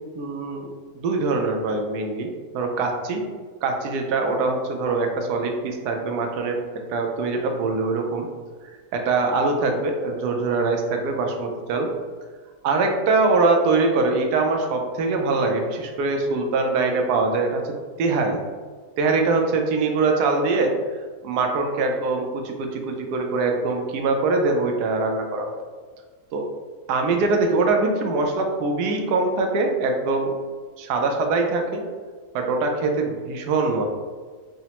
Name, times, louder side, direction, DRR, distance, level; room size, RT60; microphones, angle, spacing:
voice 1, 0.1-0.7 0.9-3.2 3.6-6.6 6.9-8.3 8.9-11.9 12.6-17.6 18.0-18.4 19.0-20.7 21.2-25.6 26.3-26.4 26.9-30.3 30.8-31.8 32.3-33.8, right 3 dB, 90° right, 3 dB, 1.1 m, -23 dB
4.9 x 2.1 x 2.8 m, 1.5 s
omnidirectional pair, 1.7 m